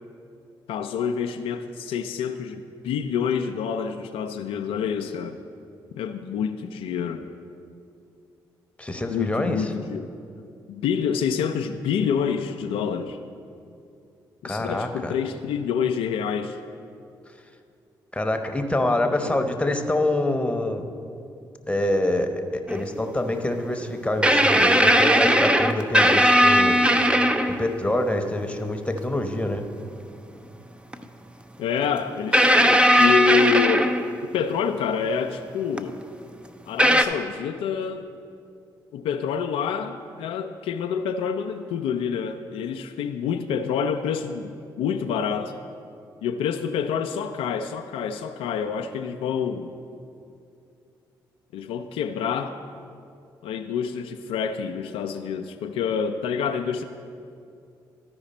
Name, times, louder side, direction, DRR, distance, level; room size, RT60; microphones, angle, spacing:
voice 1, 0.7-5.4 6.0-7.2 9.1-10.1 10.7-13.2 14.4-16.6 19.0-19.4 31.6-34.0 34.3-36.0 36.7-38.1 38.9-45.5 46.2-49.7 51.5-52.6 53.4-56.8, left 7 dB, 75° left, 6 dB, 0.4 m, -27 dB
voice 2, 8.8-9.7 14.4-15.1 18.1-20.9 21.7-26.8 27.6-29.6, left 1 dB, 10° left, 6 dB, 1.0 m, -26 dB
sound 1, 22.7-22.8 24.2-27.7 29.0-29.1 30.9-31.0 32.3-34.4 35.8-35.9 36.8-37.1, equal, 10° right, 0.6 m, -18 dB
13.0 x 4.9 x 4.2 m, 2.5 s
hypercardioid pair, 40°, 10 cm